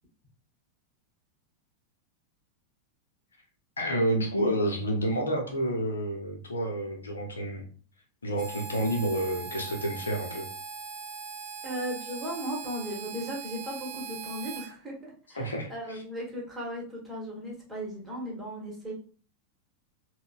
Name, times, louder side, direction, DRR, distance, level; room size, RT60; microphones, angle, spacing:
voice 1, 3.8-7.6 8.2-10.5 15.3-16.0, right 1 dB, 75° left, 1 dB, 0.7 m, -29 dB
Harmonica, 8.4-14.7, right 5 dB, 35° right, 0.7 m, -40 dB
voice 2, 11.6-18.9, equal, 5° right, -4 dB, 1.3 m, -36 dB
3.7 x 2.2 x 2.4 m, 0.41 s
figure-of-eight pair, 90°, 0 cm